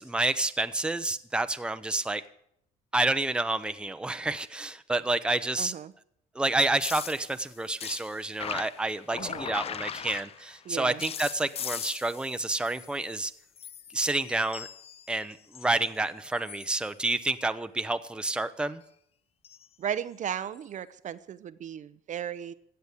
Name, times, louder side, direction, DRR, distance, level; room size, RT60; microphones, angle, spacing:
voice 1, 0.0-2.2 2.9-5.7 6.3-13.3 13.9-14.7 15.1-18.8, right 2 dB, 5° right, 10 dB, 0.7 m, -29 dB
voice 2, 5.6-5.9 9.1-9.5 10.6-11.0 19.8-22.5, right 9 dB, 45° right, 13 dB, 0.6 m, -35 dB
sound 1, 6.8-10.6 11.0-13.3 13.6-15.9 16.3-16.7 19.4-19.7 20.6-20.7, left 8 dB, 35° left, 0.5 m, -39 dB
15.5 x 8.2 x 8.4 m, 0.71 s
cardioid pair, 110°, 17 cm